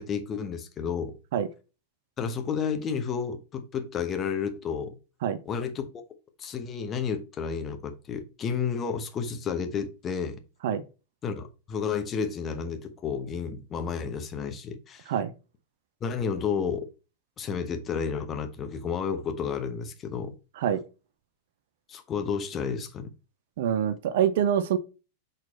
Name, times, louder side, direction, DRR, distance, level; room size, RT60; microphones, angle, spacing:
voice 1, 0.0-1.2 2.2-4.9 5.4-5.9 6.4-10.4 11.2-15.1 16.0-16.9 17.4-20.3 21.9-23.1, left 6 dB, 25° left, 1.0 m, -31 dB
voice 2, 23.6-24.8, right 9 dB, 55° right, 0.6 m, -25 dB
6.1 x 4.1 x 4.2 m
figure-of-eight pair, 90°, 0 cm